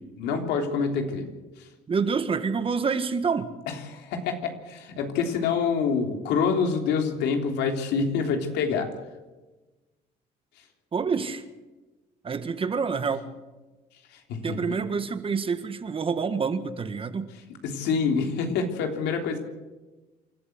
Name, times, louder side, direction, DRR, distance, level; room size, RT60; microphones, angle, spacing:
voice 1, 0.2-1.3 3.7-8.9 14.3-14.8 17.6-19.4, left 5 dB, 85° left, 4 dB, 3.4 m, -26 dB
voice 2, 1.9-3.5 10.9-11.4 12.2-13.2 14.4-17.3, right 5 dB, 30° right, 10 dB, 1.6 m, -27 dB
27.5 x 12.5 x 7.9 m, 1.2 s
cardioid pair, 110°, 17 cm